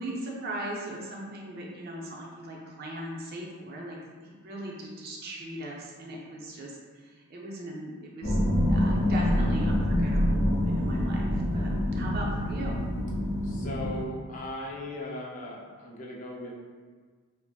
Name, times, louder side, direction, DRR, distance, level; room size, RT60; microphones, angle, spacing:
voice 1, 0.0-8.4 8.7-11.2 11.5-12.8, right 1 dB, 45° right, -2 dB, 0.4 m, -39 dB
sound 1, 8.2-14.0, left 1 dB, 90° left, 1.0 m, -26 dB
voice 2, 13.4-16.5, left 1 dB, 35° left, -3 dB, 0.3 m, -38 dB
2.5 x 2.5 x 2.2 m, 1.5 s
head